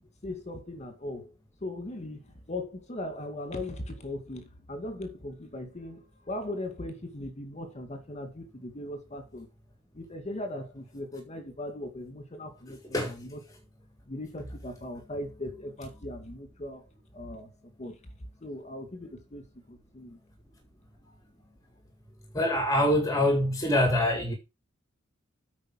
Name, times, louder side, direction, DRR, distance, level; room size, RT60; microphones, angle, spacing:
voice 1, 0.2-1.3 1.6-9.5 9.9-13.4 14.1-16.9 17.1-18.0 18.4-20.2, left 1 dB, 35° left, 2.3 m, -39 dB
voice 2, 22.3-24.3, left 1 dB, 15° left, 1.8 m, -24 dB
8.8 x 5.4 x 5.9 m
head